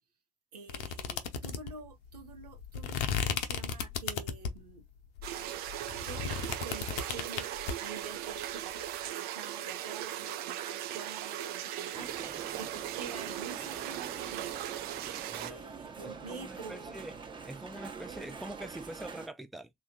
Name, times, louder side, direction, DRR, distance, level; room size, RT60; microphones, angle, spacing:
voice 1, 0.5-4.8 6.0-14.7 15.0-17.0, right 4 dB, 85° right, 0.8 m, -48 dB
sound 1, 0.7-4.7 5.2-7.7, left 7 dB, 60° left, 0.7 m, -35 dB
sound 2, 5.2-15.5, right 12 dB, 55° right, 0.5 m, -38 dB
sound 3, 11.9-19.3, right 5 dB, 25° right, 0.9 m, -45 dB
voice 2, 15.3-15.6 16.1-17.2 17.4-19.7, right 1 dB, ahead, 0.4 m, -44 dB
3.0 x 2.4 x 3.7 m
figure-of-eight pair, 60°, 20 cm